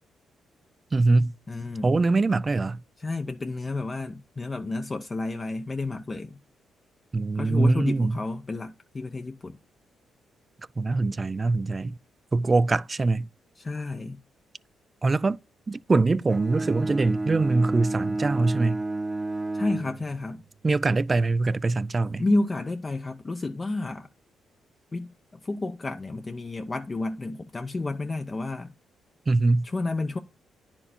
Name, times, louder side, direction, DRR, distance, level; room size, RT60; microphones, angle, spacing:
voice 1, 0.9-1.3 1.8-2.8 7.1-8.2 10.8-12.0 12.3-13.3 15.0-15.4 15.7-18.8 20.6-22.2 29.3-29.7, right 3 dB, 30° right, 0.4 m, -23 dB
voice 2, 1.5-2.0 3.0-6.4 7.4-9.6 13.6-14.2 19.5-20.4 22.2-24.1 24.9-25.1 25.4-28.7 29.6-30.2, left 2 dB, 30° left, 0.7 m, -30 dB
Bowed string instrument, 16.3-20.5, right 2 dB, 10° right, 0.9 m, -31 dB
10.0 x 4.4 x 4.3 m
cardioid pair, 75°, 0 cm